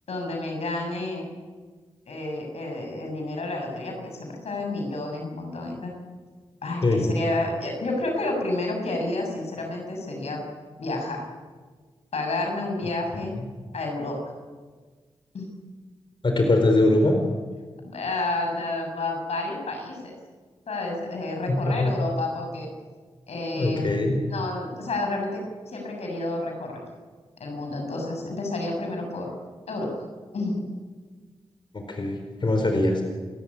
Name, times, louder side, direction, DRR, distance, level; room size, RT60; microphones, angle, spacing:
voice 1, 0.1-1.3 2.1-5.9 6.6-10.4 10.8-11.3 12.1-13.4 13.7-14.2 15.3-15.5 17.8-20.1 20.7-22.7 23.3-26.8 27.4-29.3 29.7-29.9 30.3-30.7, left 2 dB, 85° left, 2 dB, 7.2 m, -30 dB
voice 2, 6.8-7.1 13.4-13.5 16.2-17.1 21.6-21.9 23.5-24.2 31.7-33.0, left 2 dB, 50° left, 4 dB, 4.2 m, -22 dB
29.5 x 14.0 x 9.9 m, 1.5 s
wide cardioid pair, 80°, 11 cm